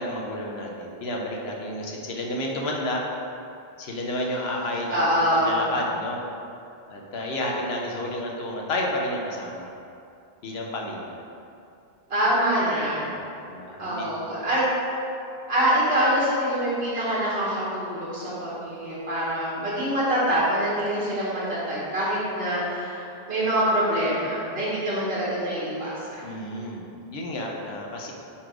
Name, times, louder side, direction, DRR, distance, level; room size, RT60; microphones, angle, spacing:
voice 1, 0.0-3.0 3.8-5.0 5.3-6.2 6.9-9.7 10.4-11.2 13.0-13.1 13.5-14.3 26.2-28.1, left 1 dB, 80° left, -1 dB, 1.0 m, -31 dB
voice 2, 4.9-5.6 12.1-13.2 13.8-14.7 15.5-26.2, equal, 75° right, -9 dB, 1.6 m, -25 dB
4.6 x 4.3 x 4.8 m, 2.6 s
omnidirectional pair, 1.0 m